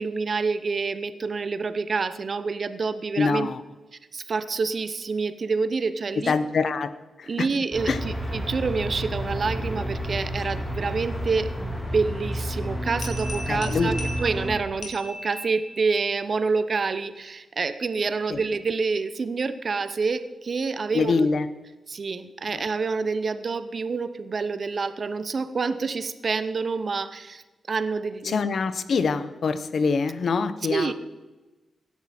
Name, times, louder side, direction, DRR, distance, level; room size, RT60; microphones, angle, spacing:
voice 1, 0.0-3.5 4.1-6.3 7.3-21.3 21.9-27.4 27.7-28.5 30.7-30.9, right 4 dB, 45° right, 12 dB, 0.8 m, -27 dB
voice 2, 3.2-3.6 6.3-6.9 7.2-7.5 7.9-8.0 13.5-13.9 18.3-18.4 20.9-21.5 22.5-22.6 28.2-30.9, left 4 dB, 60° left, 13 dB, 0.8 m, -24 dB
sound 1, 7.7-14.5, equal, 25° left, 4.6 m, -30 dB
sound 2, 13.0-16.0, left 1 dB, 75° left, 3.0 m, -38 dB
16.0 x 10.5 x 4.3 m, 1.2 s
wide cardioid pair, 120°, 0 cm